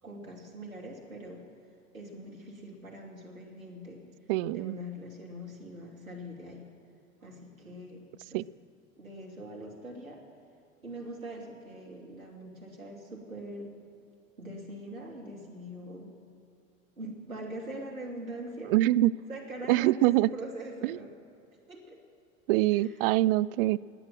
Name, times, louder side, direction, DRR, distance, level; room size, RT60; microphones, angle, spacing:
voice 1, 0.0-1.4 1.9-4.0 4.5-6.6 7.2-8.0 8.3-8.4 9.0-10.2 10.8-13.7 14.4-16.1 17.0-18.7 19.3-21.1 21.7-22.0 22.8-22.9, right 1 dB, 85° right, 0 dB, 2.7 m, -42 dB
voice 2, 4.3-4.8 8.3-8.4 18.7-19.1 19.7-20.3 20.8-21.0 22.5-23.8, right 16 dB, 45° right, 18 dB, 0.4 m, -24 dB
20.5 x 8.7 x 7.4 m, 2.7 s
figure-of-eight pair, 85°, 40 cm